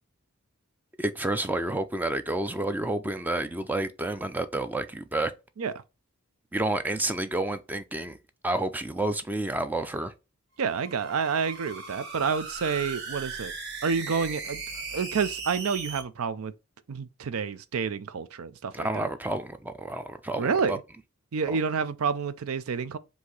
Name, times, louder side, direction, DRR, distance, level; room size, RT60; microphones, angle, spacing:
voice 1, 1.0-5.3 6.5-8.2 8.4-10.1 18.7-20.8 21.5-21.6, right 2 dB, 10° right, 0.4 m, -30 dB
sound 1, 10.6-16.0, right 4 dB, 50° right, 1.1 m, -38 dB
voice 2, 10.6-13.5 13.8-14.6 14.9-16.5 16.9-19.1 20.4-20.8 21.3-23.0, right 5 dB, 85° right, 0.5 m, -29 dB
4.7 x 2.7 x 3.9 m
head